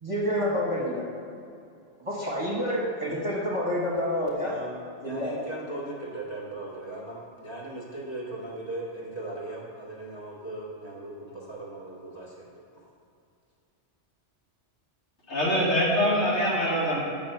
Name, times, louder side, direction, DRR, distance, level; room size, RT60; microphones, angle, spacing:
voice 1, 0.0-1.1 2.0-4.5 5.0-5.3, equal, 25° right, -5 dB, 1.3 m, -28 dB
voice 2, 4.4-12.9, right 2 dB, 35° left, -5 dB, 1.9 m, -38 dB
voice 3, 15.3-17.0, equal, 70° left, -7 dB, 2.5 m, -24 dB
6.2 x 6.0 x 7.2 m, 2.5 s
omnidirectional pair, 1.2 m